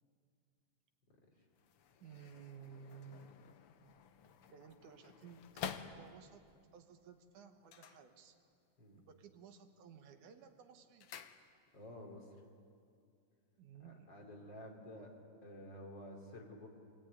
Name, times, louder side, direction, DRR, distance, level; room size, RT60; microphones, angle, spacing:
sound 1, 1.5-6.5 7.6-8.7 9.0-9.5 9.9-11.9 12.2-12.3, left 7 dB, 65° left, 1.5 m, -51 dB
voice 1, 2.0-3.5 4.5-6.4 6.7-8.4 9.0-11.1 13.6-14.2, right 6 dB, 85° right, 7 dB, 2.8 m, -56 dB
voice 2, 11.7-12.4 13.8-15.1 15.4-16.7, left 1 dB, 35° left, 1 dB, 3.4 m, -51 dB
25.0 x 18.0 x 9.5 m, 2.3 s
omnidirectional pair, 3.4 m